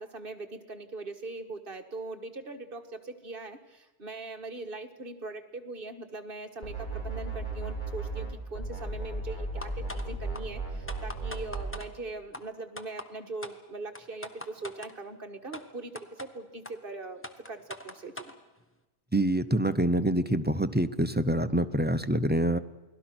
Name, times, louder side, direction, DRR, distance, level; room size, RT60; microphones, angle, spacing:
voice 1, 0.0-18.1, right 3 dB, 40° right, 6 dB, 1.8 m, -41 dB
sound 1, 6.6-8.3 8.5-11.7, right 3 dB, 35° left, 6.8 m, -35 dB
sound 2, 9.6-10.1 10.3-10.4 10.9-11.9 12.3-12.4 12.8-13.1 13.4-13.6 14.0-14.9 15.5-15.6 16.0-16.3 16.7-16.8 17.2-18.3, left 1 dB, 10° left, 1.2 m, -41 dB
voice 2, 19.1-22.6, right 1 dB, 15° right, 10 dB, 0.4 m, -26 dB
29.0 x 20.0 x 6.1 m, 1.1 s
omnidirectional pair, 1.4 m